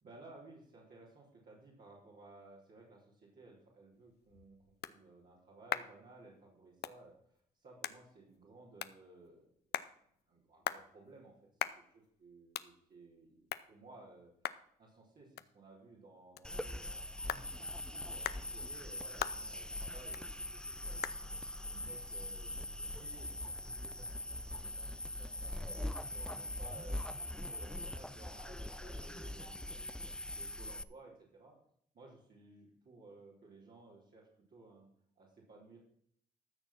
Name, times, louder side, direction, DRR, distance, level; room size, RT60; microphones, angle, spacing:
voice 1, 0.0-4.6 4.9-9.5 10.3-11.3 11.9-14.3 14.8-21.4 21.7-27.0 27.4-30.0 30.3-31.6 31.9-34.9 35.2-35.8, right 2 dB, 60° right, -6 dB, 3.8 m, -58 dB
sound 1, 3.9-23.2, left 11 dB, 70° left, 0.6 m, -46 dB
sound 2, 16.4-30.8, left 1 dB, 5° left, 0.6 m, -42 dB
13.5 x 6.4 x 6.0 m, 0.67 s
supercardioid pair, 50°, 17 cm